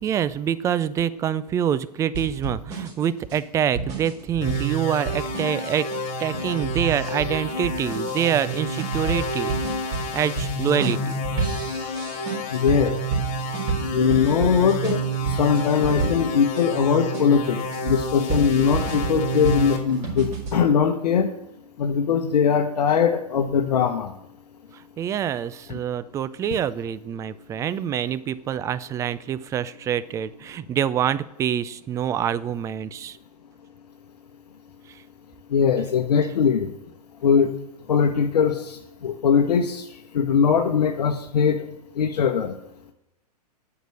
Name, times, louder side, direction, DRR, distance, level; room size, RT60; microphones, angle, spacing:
voice 1, 0.0-5.9 6.2-9.5 10.1-11.1 25.0-33.2, right 9 dB, 15° right, 16 dB, 0.4 m, -26 dB
sound 1, 2.1-16.6 17.1-20.6, right 4 dB, 35° right, 4.1 m, -31 dB
sound 2, 4.4-19.8, right 1 dB, 35° left, 3.0 m, -29 dB
voice 2, 12.5-13.0 13.9-21.3 21.8-24.1 25.7-25.8 35.5-36.7 37.2-37.5 37.9-38.8 39.0-39.8 40.1-41.6 42.0-42.5, left 7 dB, 70° left, 4 dB, 1.0 m, -21 dB
9.2 x 6.0 x 6.4 m, 0.87 s
hypercardioid pair, 120°, 21 cm